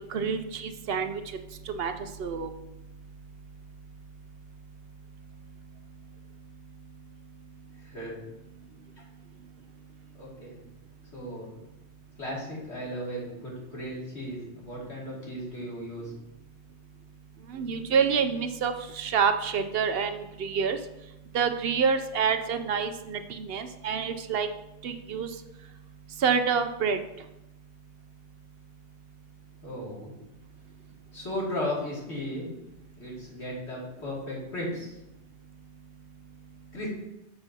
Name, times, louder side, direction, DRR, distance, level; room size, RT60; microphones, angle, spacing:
voice 1, 0.1-1.2 1.7-1.9 2.2-2.5 17.5-20.8 21.3-24.5 24.8-25.3 26.2-27.0, right 6 dB, 65° right, 9 dB, 0.8 m, -27 dB
voice 2, 7.7-8.2 8.7-9.0 10.1-10.6 11.0-11.5 12.2-16.1 29.6-30.1 31.1-32.5 33.0-35.0 36.7-36.9, left 1 dB, 75° left, -5 dB, 2.8 m, -36 dB
8.0 x 6.8 x 2.8 m, 0.91 s
omnidirectional pair, 1.1 m